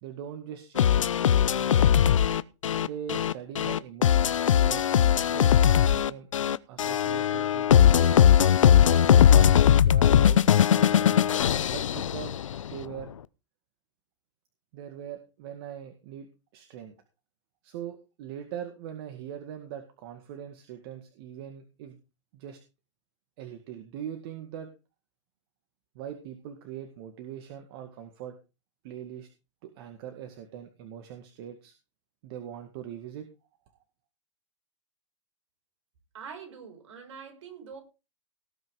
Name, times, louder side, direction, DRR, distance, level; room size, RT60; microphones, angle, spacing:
voice 1, 0.0-1.9 2.8-6.3 6.7-8.3 8.9-10.4 10.7-11.4 11.7-12.4 12.7-13.1 14.7-16.3 16.5-16.9 17.6-22.0 22.3-22.6 23.4-24.7 25.9-28.4 28.8-29.3 29.6-31.7 32.2-33.3, right 9 dB, 50° right, 7 dB, 2.1 m, -41 dB
sound 1, 0.8-12.7, left 9 dB, 85° left, 0.7 m, -20 dB
voice 2, 36.1-37.8, right 6 dB, 65° right, 4 dB, 5.1 m, -44 dB
18.5 x 6.1 x 4.8 m, 0.30 s
hypercardioid pair, 125°, 16 cm